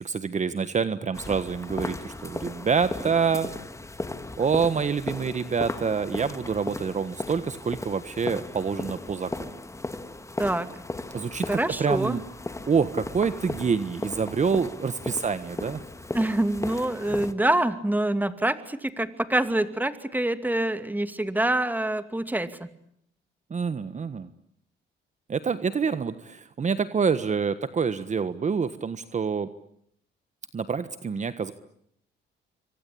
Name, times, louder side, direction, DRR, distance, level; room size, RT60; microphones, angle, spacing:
voice 1, 0.0-3.5 4.4-9.6 11.1-12.2 12.7-15.8 23.5-24.3 25.3-29.5 30.5-31.5, right 6 dB, 35° right, 12 dB, 1.4 m, -27 dB
sound 1, 1.1-17.3, left 2 dB, 15° left, 2.3 m, -36 dB
voice 2, 11.5-12.2 16.1-22.7, right 1 dB, 10° right, 10 dB, 2.5 m, -26 dB
27.5 x 25.0 x 8.7 m, 0.71 s
cardioid pair, 90°, 20 cm